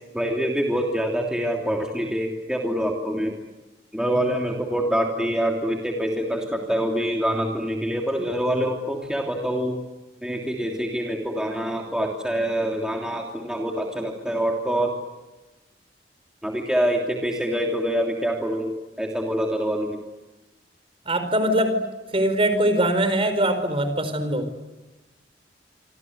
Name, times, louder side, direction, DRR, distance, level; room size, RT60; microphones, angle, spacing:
voice 1, 0.1-3.4 3.9-9.8 10.2-15.0 16.4-20.0, equal, 5° right, 1 dB, 3.1 m, -25 dB
voice 2, 21.1-21.8 22.1-24.5, right 1 dB, 30° right, 9 dB, 4.7 m, -22 dB
27.0 x 26.5 x 8.1 m, 1.1 s
head